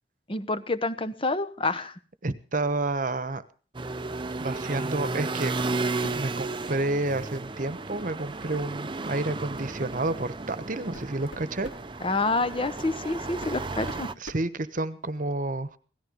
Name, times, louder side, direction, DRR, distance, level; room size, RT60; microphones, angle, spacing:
voice 1, 0.3-1.9 12.0-14.1, left 3 dB, 30° left, 13 dB, 1.0 m, -28 dB
voice 2, 2.2-3.4 4.4-5.5 6.1-11.7 13.5-13.6 14.2-15.8, right 2 dB, 45° right, 14 dB, 1.1 m, -30 dB
sound 1, 3.7-14.1, right 3 dB, 25° right, 0.7 m, -33 dB
sound 2, 5.1-5.3 5.6-6.4 7.9-8.1 8.5-8.7 9.1-9.3 10.2-10.3 10.7-11.9 12.9-13.0 13.4-15.2, equal, 80° left, 4.3 m, -45 dB
17.5 x 14.0 x 5.3 m, 0.39 s
head